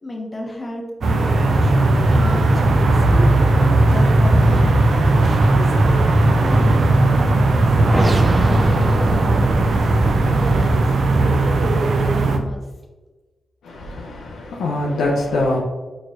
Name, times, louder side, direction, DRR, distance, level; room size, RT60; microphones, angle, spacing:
voice 1, 0.0-4.8 5.6-6.1 6.4-8.2 8.5-9.6 10.2-11.9 12.2-12.7, left 1 dB, 35° left, 0 dB, 1.1 m, -33 dB
sound 1, 1.0-12.4, right 2 dB, 70° right, 0.5 m, -18 dB
sound 2, 1.4-11.1, right 1 dB, 35° right, 0.7 m, -20 dB
voice 2, 13.6-15.6, left 2 dB, 85° left, -2 dB, 0.6 m, -23 dB
4.5 x 4.3 x 2.5 m, 1.2 s
supercardioid pair, 40°, 0 cm